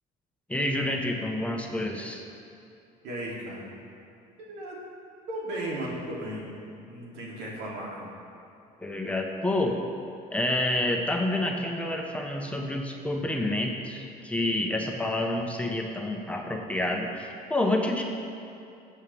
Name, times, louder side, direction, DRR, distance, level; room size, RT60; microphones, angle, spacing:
voice 1, 0.5-2.2 8.8-9.8 10.3-18.0, left 1 dB, 10° left, 1 dB, 1.2 m, -28 dB
voice 2, 3.0-3.7 4.4-4.8 5.3-6.5 6.8-8.1, right 1 dB, 90° right, -5 dB, 3.0 m, -35 dB
18.0 x 7.7 x 3.5 m, 2.6 s
cardioid pair, 110°, 17 cm